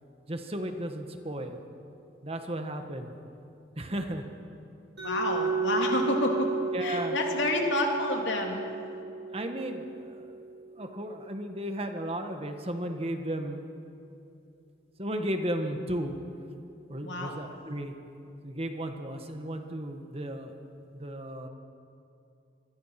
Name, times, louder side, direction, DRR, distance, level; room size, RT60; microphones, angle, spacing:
voice 1, 0.3-1.6 2.2-3.1 3.8-4.2 6.7-7.1 9.3-10.4 10.8-13.7 15.0-16.1 16.9-17.9 18.4-20.5 20.9-21.5, right 1 dB, 30° right, 5 dB, 1.6 m, -34 dB
voice 2, 5.0-6.5 6.8-8.6 17.0-17.4, left 1 dB, 80° left, 1 dB, 3.4 m, -29 dB
Mallet percussion, 5.0-10.8, right 4 dB, 65° right, 6.2 m, -33 dB
26.0 x 22.5 x 6.0 m, 2.7 s
head